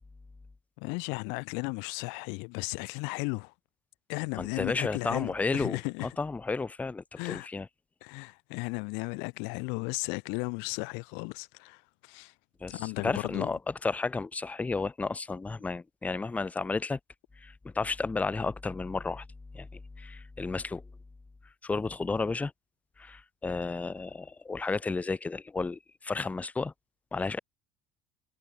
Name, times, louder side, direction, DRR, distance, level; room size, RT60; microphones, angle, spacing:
voice 1, 0.8-3.5 4.1-6.2 7.2-7.5 8.0-12.3 12.7-13.5, left 34 dB, 85° left, 0.4 m, -35 dB
voice 2, 4.4-5.8 6.2-7.7 12.6-17.0 17.4-19.2 19.5-20.8 21.6-22.5 23.0-26.7 27.1-27.4, left 4 dB, 10° left, 0.5 m, -32 dB
cardioid pair, 175°, 18 cm